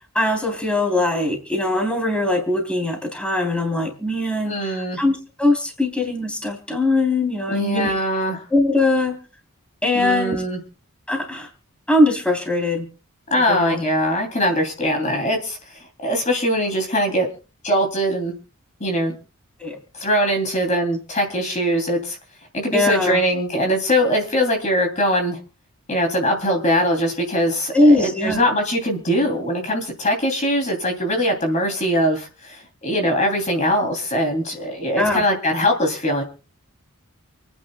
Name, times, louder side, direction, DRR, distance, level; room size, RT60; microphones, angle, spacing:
voice 1, 0.1-7.9 8.5-9.2 9.8-10.4 11.1-11.5 11.9-12.9 13.3-13.8 19.6-19.8 22.7-23.2 27.7-28.4 34.9-35.2, left 2 dB, 5° left, 3 dB, 3.3 m, -21 dB
voice 2, 4.5-5.0 7.5-8.5 9.9-10.6 13.3-15.6 16.0-17.3 17.6-18.3 18.8-19.1 20.0-22.2 22.5-25.4 25.9-36.2, equal, 35° left, 3 dB, 2.9 m, -21 dB
28.5 x 9.9 x 2.2 m, 0.33 s
head